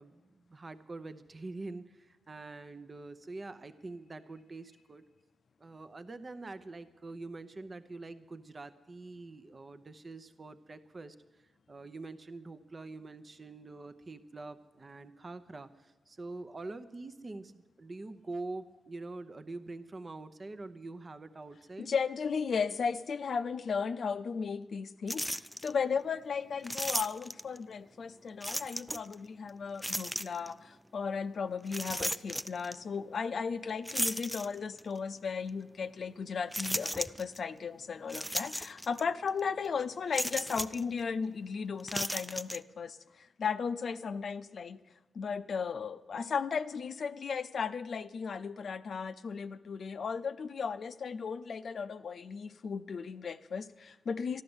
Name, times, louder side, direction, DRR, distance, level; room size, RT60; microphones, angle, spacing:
voice 1, 0.0-5.1 5.6-21.9, right 3 dB, 35° right, 10 dB, 0.8 m, -45 dB
voice 2, 21.8-44.8 45.1-54.4, left 6 dB, 65° left, 11 dB, 0.5 m, -35 dB
sound 1, 25.1-25.7 26.6-27.6 28.4-29.1 29.8-30.5 31.7-32.8 33.9-34.9 35.5-35.6 36.5-37.4 38.1-39.0 39.3-39.4 40.1-40.8 41.8-42.6, equal, ahead, 0.4 m, -35 dB
12.5 x 12.5 x 7.9 m, 1.2 s
cardioid pair, 75°, 0 cm